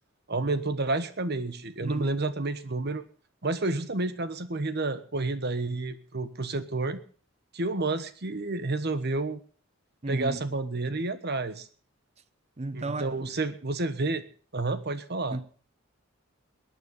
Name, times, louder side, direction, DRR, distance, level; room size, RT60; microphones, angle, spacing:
voice 1, 0.3-3.0 3.4-7.0 7.5-9.4 10.1-11.7 12.7-14.3 14.5-15.4, right 2 dB, 50° right, 1.3 m, -30 dB
voice 2, 1.8-2.2 10.0-10.4 12.6-13.3 15.3-15.4, right 2 dB, 30° right, 0.8 m, -34 dB
21.5 x 9.4 x 5.4 m
head